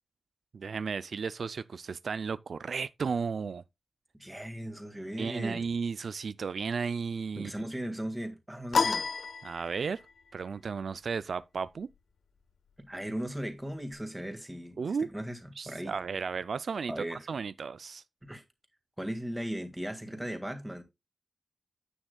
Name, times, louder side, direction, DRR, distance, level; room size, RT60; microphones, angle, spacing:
voice 1, 0.5-3.6 5.2-7.5 9.4-10.0 10.3-11.9 14.8-15.1 15.6-18.0, right 5 dB, 65° right, 0.3 m, -34 dB
voice 2, 4.2-5.6 7.4-9.1 12.9-15.9 16.9-17.2 18.2-18.4 19.0-20.8, equal, 10° right, 1.8 m, -37 dB
sound 1, 8.7-10.1, left 5 dB, 75° left, 0.9 m, -29 dB
9.8 x 8.8 x 2.2 m
wide cardioid pair, 145°, 0 cm